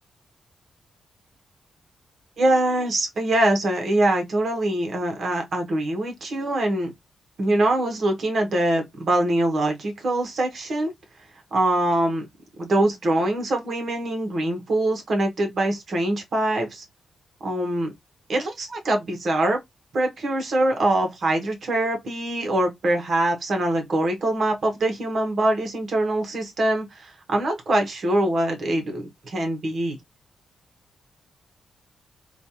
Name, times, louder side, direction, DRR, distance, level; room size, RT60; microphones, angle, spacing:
voice 1, 2.4-6.9 7.4-10.9 11.5-12.2 12.6-16.8 17.4-17.9 18.3-19.6 19.9-30.0, right 1 dB, 45° right, 1.0 m, -23 dB
3.1 x 2.3 x 2.7 m
wide cardioid pair, 160°, 0 cm